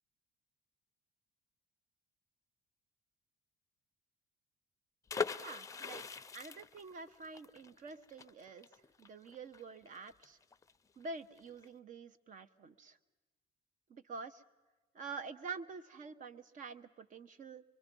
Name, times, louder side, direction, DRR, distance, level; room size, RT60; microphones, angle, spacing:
sound 1, 5.1-10.7 11.0-11.1 11.4-11.7, left 5 dB, 20° left, 0.6 m, -42 dB
voice 1, 5.4-6.1 6.3-8.7 9.0-10.4 11.0-13.0 13.9-14.4 14.9-17.6, right 4 dB, 50° right, 12 dB, 1.0 m, -47 dB
24.0 x 23.5 x 5.4 m, 1.2 s
cardioid pair, 110°, 17 cm